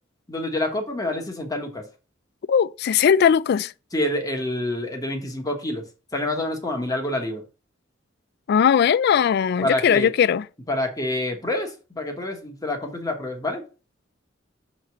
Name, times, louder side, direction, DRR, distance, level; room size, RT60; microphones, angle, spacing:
voice 1, 0.3-1.8 3.9-5.8 6.1-7.4 9.6-10.1 10.7-13.6, left 1 dB, 20° left, 1.2 m, -27 dB
voice 2, 2.5-3.7 8.5-10.5, left 7 dB, 60° left, 0.3 m, -19 dB
6.4 x 3.1 x 5.8 m
head